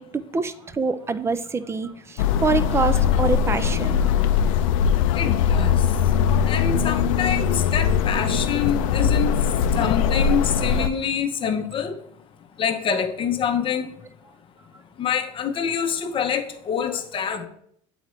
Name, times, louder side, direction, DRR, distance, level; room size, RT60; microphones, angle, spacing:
voice 1, 0.0-4.1, right 4 dB, 15° right, 12 dB, 0.3 m, -26 dB
sound 1, 2.2-10.9, left 7 dB, 75° left, 0.4 m, -21 dB
voice 2, 5.2-5.8 6.5-9.4 9.7-11.9 12.6-13.9 15.0-17.5, left 7 dB, 30° left, 6 dB, 0.7 m, -26 dB
7.9 x 3.9 x 3.1 m, 0.68 s
supercardioid pair, 105°, 17 cm